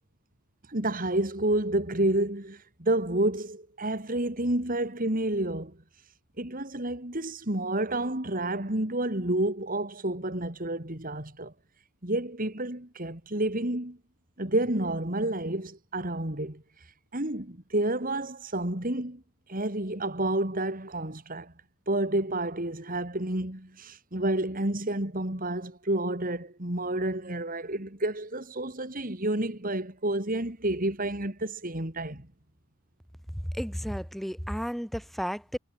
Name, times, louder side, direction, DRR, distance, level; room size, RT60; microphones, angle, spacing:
voice 1, 0.7-5.8 6.4-11.5 12.0-14.0 14.4-16.9 17.1-19.2 19.5-21.5 21.9-32.3, right 1 dB, 40° right, 3.2 m, -30 dB
voice 2, 33.3-35.6, equal, ahead, 5.6 m, -33 dB
head